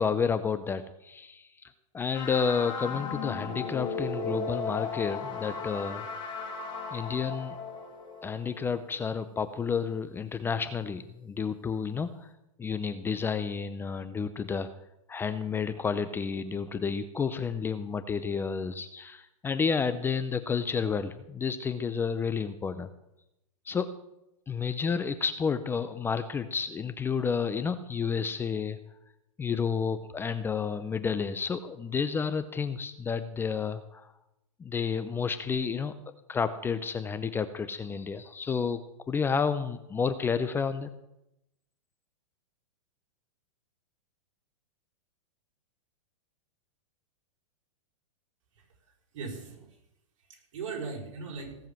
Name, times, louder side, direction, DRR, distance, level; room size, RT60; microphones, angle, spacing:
voice 1, 0.0-6.0 6.9-7.6 8.2-12.3 12.6-14.7 15.1-22.9 23.7-23.9 24.5-28.8 29.4-34.1 34.6-35.9 36.3-38.8 39.1-40.9, left 6 dB, 15° left, 12 dB, 0.6 m, -30 dB
sound 1, 2.1-9.0, left 5 dB, 30° left, 5.0 m, -36 dB
voice 2, 49.1-49.8 50.3-51.6, right 4 dB, 65° right, 0 dB, 5.9 m, -39 dB
17.0 x 7.2 x 7.5 m, 0.86 s
hypercardioid pair, 135°, 17 cm